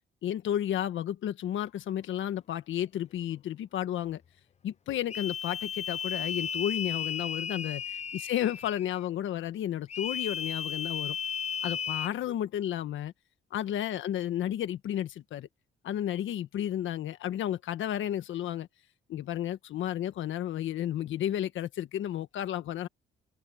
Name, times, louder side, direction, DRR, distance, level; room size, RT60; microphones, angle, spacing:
voice 1, 0.2-4.2 4.6-11.2 11.6-13.1 13.5-15.5 15.8-18.7 19.1-22.9, left 11 dB, 75° left, 1.5 m, -32 dB
sound 1, 5.1-9.0 9.9-12.1, left 8 dB, 35° left, 0.5 m, -34 dB
open air
cardioid pair, 90°, 20 cm